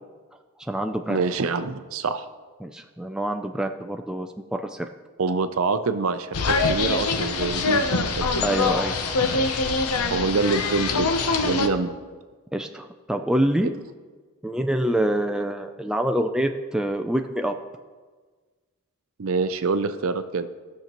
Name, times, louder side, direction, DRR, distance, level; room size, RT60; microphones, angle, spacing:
voice 1, 0.6-1.3 2.6-4.9 8.4-9.0 9.3-9.6 12.5-13.7 14.4-17.6, right 1 dB, 5° right, 5 dB, 0.3 m, -26 dB
voice 2, 1.1-2.2 5.2-8.3 10.1-11.9 19.2-20.5, right 4 dB, 65° right, 10 dB, 0.6 m, -26 dB
sound 1, 6.3-11.7, left 3 dB, 80° left, 0.8 m, -24 dB
16.0 x 6.5 x 3.0 m, 1.4 s
head